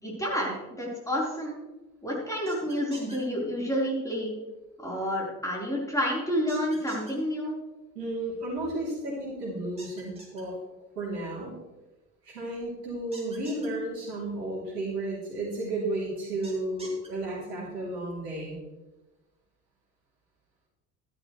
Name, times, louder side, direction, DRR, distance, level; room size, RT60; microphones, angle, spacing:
voice 1, 0.0-1.6 2.0-4.3 4.8-7.6, equal, 5° left, -4 dB, 4.5 m, -29 dB
sound 1, 2.5-3.2 6.5-7.1 9.8-10.4 13.1-13.7 16.4-17.1, right 2 dB, 10° right, 3.9 m, -46 dB
voice 2, 8.0-10.6 11.0-11.5 12.2-18.6, right 2 dB, 70° right, -4 dB, 3.6 m, -33 dB
13.0 x 11.5 x 3.3 m, 1.1 s
figure-of-eight pair, 60°, 49 cm